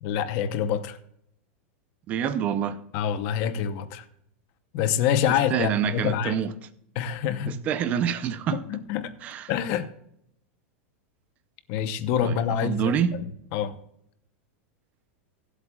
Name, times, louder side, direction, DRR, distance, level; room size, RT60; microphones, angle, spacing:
voice 1, 0.0-1.0 2.9-4.0 4.7-6.4 6.9-7.6 8.5-9.1 9.5-9.9 11.7-13.2 13.5-13.8, left 9 dB, 35° left, 0.8 m, -26 dB
voice 2, 2.1-2.8 5.5-6.5 7.5-8.6 9.2-9.5 12.2-13.2, right 8 dB, 20° right, 0.5 m, -27 dB
23.0 x 8.2 x 2.3 m
supercardioid pair, 180°, 7 cm